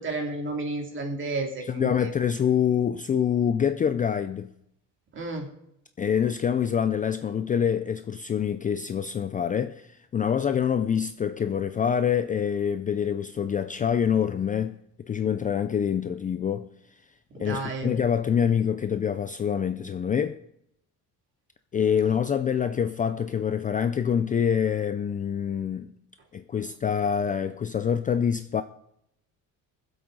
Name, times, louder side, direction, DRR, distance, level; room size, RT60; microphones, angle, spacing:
voice 1, 0.0-2.1 5.1-5.5 17.3-17.9, right 3 dB, 35° right, 2.6 m, -32 dB
voice 2, 1.7-4.5 6.0-16.7 17.4-20.4 21.7-25.9 26.3-28.6, left 8 dB, 25° left, 0.4 m, -26 dB
21.0 x 7.9 x 3.9 m
cardioid pair, 150°, 33 cm